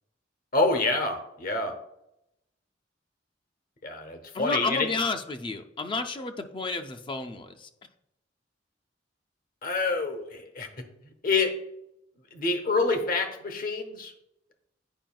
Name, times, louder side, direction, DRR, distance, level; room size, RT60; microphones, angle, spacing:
voice 1, 0.5-1.8 3.8-4.9 9.6-10.7 11.2-11.6 12.3-14.1, left 3 dB, 50° left, 7 dB, 0.8 m, -27 dB
voice 2, 4.3-7.7, left 3 dB, 30° left, 6 dB, 0.4 m, -31 dB
9.0 x 5.1 x 2.3 m, 0.85 s
head